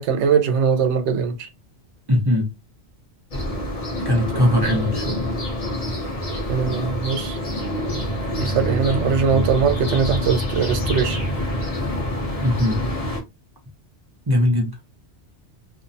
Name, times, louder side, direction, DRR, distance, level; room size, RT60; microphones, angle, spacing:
voice 1, 0.0-1.5 6.5-7.4 8.4-11.2, right 6 dB, 85° right, 0.9 m, -21 dB
voice 2, 2.1-2.5 4.0-5.1 12.4-12.8 14.3-14.8, left 1 dB, 30° right, 0.5 m, -20 dB
sound 1, 3.3-13.2, equal, 35° left, 0.8 m, -26 dB
2.7 x 2.1 x 2.5 m
omnidirectional pair, 1.1 m